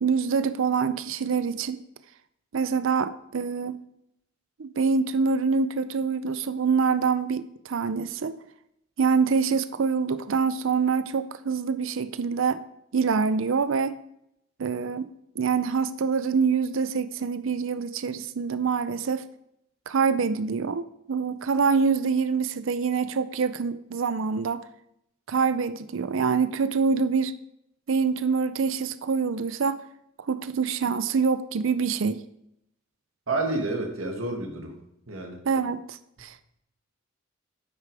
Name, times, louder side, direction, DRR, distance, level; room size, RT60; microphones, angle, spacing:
voice 1, 0.0-1.8 2.5-3.8 4.6-8.4 9.0-12.6 12.9-14.0 14.6-15.1 15.4-19.3 19.9-24.6 25.3-27.3 27.9-29.8 30.3-32.2 35.5-36.3, right 5 dB, 65° right, 13 dB, 0.5 m, -25 dB
voice 2, 33.3-34.8 35.1-35.4, right 2 dB, 85° right, 2 dB, 2.0 m, -29 dB
9.6 x 8.2 x 4.9 m, 0.79 s
head